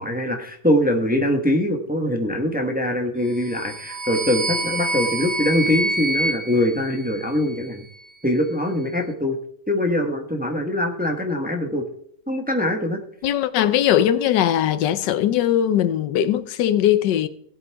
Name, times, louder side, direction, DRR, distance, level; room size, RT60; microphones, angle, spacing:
voice 1, 0.0-7.8 8.2-9.4 9.7-11.8 12.3-13.0, left 1 dB, 5° right, 1.1 m, -23 dB
sound 1, 3.3-7.6, right 2 dB, 65° right, 0.4 m, -27 dB
voice 2, 13.2-17.3, left 11 dB, 90° left, 1.4 m, -20 dB
17.5 x 8.1 x 3.5 m
omnidirectional pair, 1.8 m